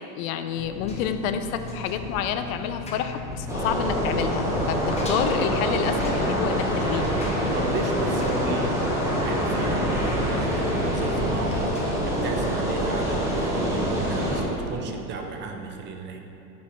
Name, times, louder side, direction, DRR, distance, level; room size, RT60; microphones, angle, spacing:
voice 1, 0.2-7.1, left 8 dB, 70° left, 9 dB, 0.6 m, -28 dB
Engine, 0.6-12.2, left 4 dB, 15° left, 0.7 m, -36 dB
sound 1, 3.5-14.4, equal, 5° right, 1.1 m, -25 dB
voice 2, 4.8-5.2 7.5-8.7 9.2-16.2, right 4 dB, 25° right, 4 dB, 0.5 m, -34 dB
sound 2, 7.5-13.0, right 1 dB, 80° right, 1.5 m, -39 dB
5.3 x 4.5 x 5.2 m, 2.9 s
supercardioid pair, 125°, 42 cm